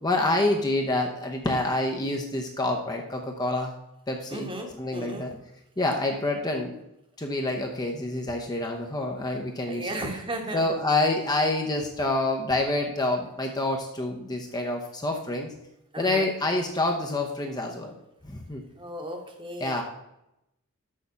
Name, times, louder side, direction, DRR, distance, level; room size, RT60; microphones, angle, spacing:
voice 1, 0.0-3.7 4.1-4.5 4.8-5.3 5.8-6.7 7.2-9.9 10.5-15.5 16.0-18.0 18.2-18.6 19.6-19.8, left 2 dB, 20° left, 1 dB, 0.8 m, -27 dB
voice 2, 4.3-5.3 9.7-10.7 15.9-16.3 18.8-19.8, right 1 dB, 25° right, 3 dB, 1.3 m, -35 dB
6.5 x 5.8 x 6.9 m, 0.85 s
head